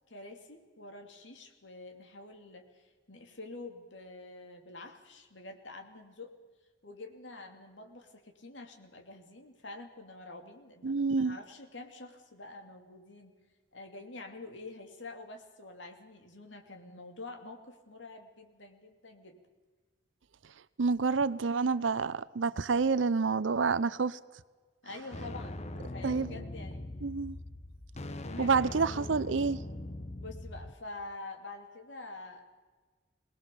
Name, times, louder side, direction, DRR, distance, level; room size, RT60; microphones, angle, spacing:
voice 1, 0.1-6.4 6.8-13.3 13.7-19.4 24.8-26.9 28.1-28.8 29.1-29.3 30.2-32.6, left 2 dB, 75° left, 5 dB, 2.8 m, -47 dB
voice 2, 10.8-11.4 20.8-24.2 26.0-26.3 27.0-27.4 28.4-29.6, right 4 dB, 80° right, 18 dB, 0.6 m, -28 dB
sound 1, 25.1-30.7, left 1 dB, 35° left, 1.0 m, -41 dB
22.5 x 19.0 x 6.9 m, 1.3 s
head